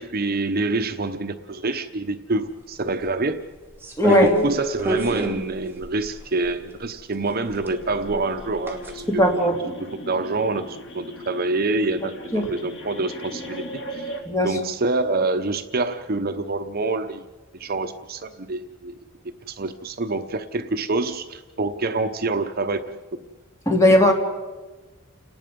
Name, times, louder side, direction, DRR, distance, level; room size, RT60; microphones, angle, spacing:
voice 1, 0.0-3.4 4.0-13.6 13.9-14.2 14.4-17.3 17.5-18.9 19.5-23.0, right 3 dB, 45° right, 9 dB, 0.9 m, -26 dB
sound 1, 3.8-6.6 7.5-8.9 9.3-9.4, right 1 dB, 10° right, 2.4 m, -27 dB
voice 2, 4.0-4.3 9.1-9.6 12.3-12.5 14.2-14.5 23.7-24.1, left 1 dB, 15° left, 2 dB, 2.8 m, -17 dB
sound 2, 7.4-14.2, equal, 65° left, 2.9 m, -38 dB
30.0 x 19.0 x 5.3 m, 1.2 s
head